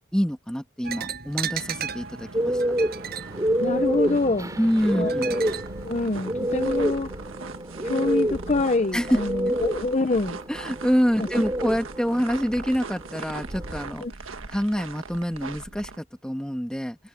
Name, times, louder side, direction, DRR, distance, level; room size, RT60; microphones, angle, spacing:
voice 1, 0.1-2.6 4.6-5.4 8.9-9.2 9.5-9.6 10.5-14.1 14.5-17.0, equal, 5° left, 2.4 m, -26 dB
sound 1, 0.8-6.9, right 7 dB, 50° right, 6.1 m, -37 dB
sound 2, 1.4-16.0, right 3 dB, 80° right, 1.5 m, -39 dB
sound 3, 2.3-13.9, equal, 15° right, 3.5 m, -29 dB
voice 2, 3.6-4.5 4.9-5.4 5.8-7.1 7.8-10.4 11.3-11.4 14.0-14.1, left 3 dB, 35° left, 0.6 m, -26 dB
head